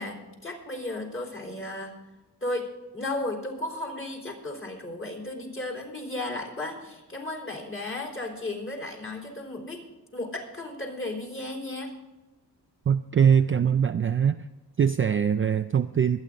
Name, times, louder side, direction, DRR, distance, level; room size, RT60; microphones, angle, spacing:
voice 1, 0.0-1.9 2.4-2.7 2.9-9.8 10.1-11.9, left 2 dB, 30° left, 0 dB, 3.7 m, -34 dB
voice 2, 12.9-14.4 14.8-16.2, right 7 dB, 35° right, 9 dB, 0.4 m, -22 dB
24.0 x 9.2 x 3.9 m, 1.1 s
wide cardioid pair, 130°, 40 cm